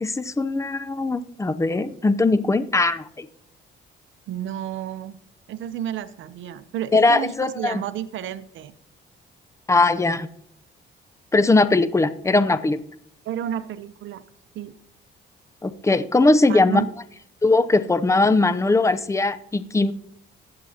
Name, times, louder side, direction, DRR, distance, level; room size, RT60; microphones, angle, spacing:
voice 1, 0.0-3.3 6.9-7.8 9.7-10.3 11.3-12.8 15.6-16.8 17.4-19.9, left 3 dB, 15° left, 12 dB, 0.6 m, -20 dB
voice 2, 4.3-5.2 5.5-8.7 13.2-14.2 14.5-14.7 16.5-16.9, right 11 dB, 75° right, 13 dB, 0.7 m, -31 dB
20.0 x 7.6 x 2.8 m, 0.70 s
cardioid pair, 90°, 20 cm